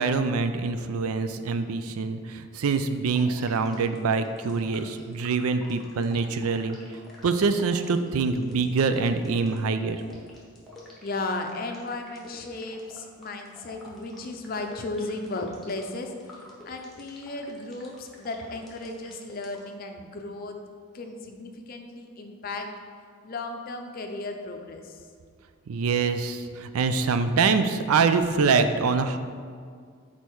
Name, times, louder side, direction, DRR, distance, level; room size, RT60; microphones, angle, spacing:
voice 1, 0.0-6.8 7.2-10.0 25.7-29.2, right 4 dB, 80° right, 9 dB, 0.4 m, -25 dB
sound 1, 3.1-19.7, left 2 dB, ahead, 1.0 m, -49 dB
voice 2, 11.0-16.1 16.6-20.6 20.9-22.7 23.2-25.0, left 2 dB, 40° left, 4 dB, 0.5 m, -35 dB
6.5 x 4.1 x 4.5 m, 2.1 s
head